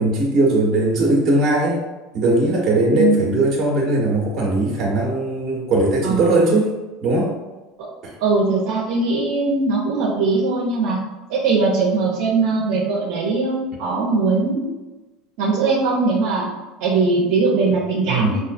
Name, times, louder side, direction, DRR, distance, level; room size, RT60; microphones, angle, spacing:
voice 1, 0.0-1.8 2.1-6.7 7.0-7.3 8.0-8.1 18.1-18.4, right 2 dB, 35° right, -3 dB, 1.3 m, -19 dB
voice 2, 2.9-3.3 6.0-6.6 7.8-7.9 8.2-11.0 11.3-14.7 15.4-16.5 16.8-18.4, right 3 dB, 65° right, -4 dB, 0.8 m, -20 dB
5.5 x 2.5 x 2.5 m, 1.1 s
supercardioid pair, 130°, 0 cm